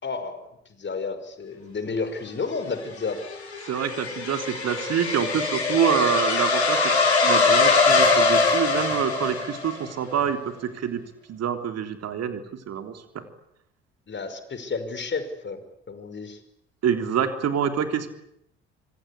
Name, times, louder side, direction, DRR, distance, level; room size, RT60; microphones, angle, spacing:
voice 1, 0.0-3.2 14.1-16.4, left 4 dB, 35° left, 10 dB, 5.4 m, -32 dB
sound 1, 2.8-9.8, left 4 dB, 90° left, 5.2 m, -22 dB
voice 2, 3.6-6.8 7.2-10.4 10.7-11.0 11.3-12.4 12.7-13.2 16.8-18.1, right 8 dB, 50° right, 6 dB, 3.5 m, -26 dB
26.5 x 24.0 x 8.5 m, 0.75 s
figure-of-eight pair, 50°, 32 cm